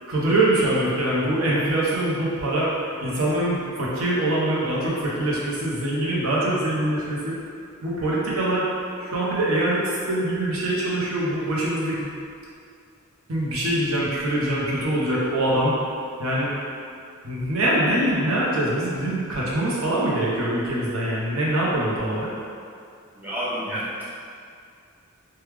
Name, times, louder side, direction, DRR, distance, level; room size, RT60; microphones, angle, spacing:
voice 1, 0.1-2.7 3.0-7.4 7.8-8.7 9.0-12.1 13.3-15.8 16.2-16.5 17.2-22.3, right 1 dB, 70° right, -6 dB, 0.7 m, -23 dB
voice 2, 23.1-24.0, equal, 10° right, -11 dB, 0.8 m, -29 dB
3.3 x 2.2 x 3.2 m, 2.4 s
head